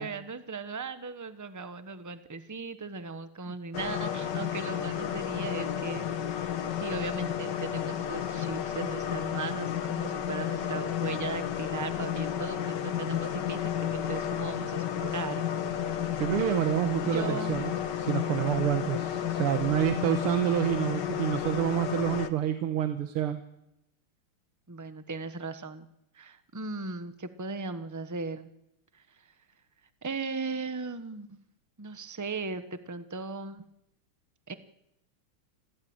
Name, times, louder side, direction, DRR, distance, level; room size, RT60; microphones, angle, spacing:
voice 1, 0.0-6.1 6.4-15.4 16.4-16.5 17.0-17.6 24.7-25.9 26.1-28.5 28.9-29.3 30.0-31.3 31.8-33.6 34.5-34.6, right 4 dB, 30° right, 11 dB, 0.3 m, -37 dB
sound 1, 3.7-22.3, left 9 dB, 55° left, 1.7 m, -32 dB
voice 2, 16.2-23.4, right 11 dB, 80° right, 9 dB, 2.0 m, -28 dB
26.5 x 15.5 x 8.8 m, 0.86 s
omnidirectional pair, 2.4 m